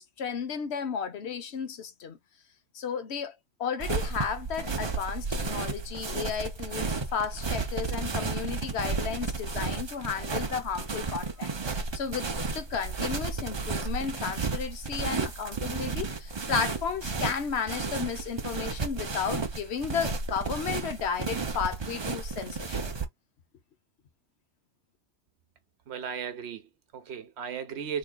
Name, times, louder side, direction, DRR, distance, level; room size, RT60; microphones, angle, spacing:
voice 1, 0.0-2.2 2.7-22.9, left 6 dB, 65° left, 1.1 m, -33 dB
sound 1, 3.8-23.0, right 4 dB, 30° right, 0.5 m, -33 dB
voice 2, 25.9-28.0, right 7 dB, 60° right, 1.1 m, -36 dB
3.7 x 3.1 x 2.2 m
omnidirectional pair, 1.3 m